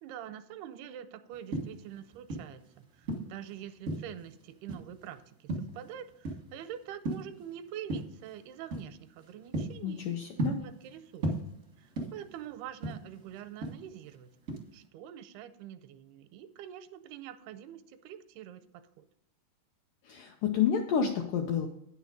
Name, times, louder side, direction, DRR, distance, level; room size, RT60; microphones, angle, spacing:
voice 1, 0.0-10.2 10.6-11.3 11.8-14.3 14.7-18.6 19.0-19.1, right 10 dB, 85° right, 10 dB, 2.5 m, -45 dB
sound 1, 1.3-2.6 3.0-4.3 4.7-5.1 5.5-6.6 6.9-7.4 7.9-8.2 8.7-8.9 9.3-10.9 11.2-12.4 12.7-14.1 14.5-14.8, right 2 dB, 65° right, 0.7 m, -35 dB
voice 2, 9.8-10.6 20.1-21.7, left 7 dB, 80° left, 3 dB, 1.9 m, -29 dB
9.5 x 6.5 x 5.1 m, 0.79 s
omnidirectional pair, 4.6 m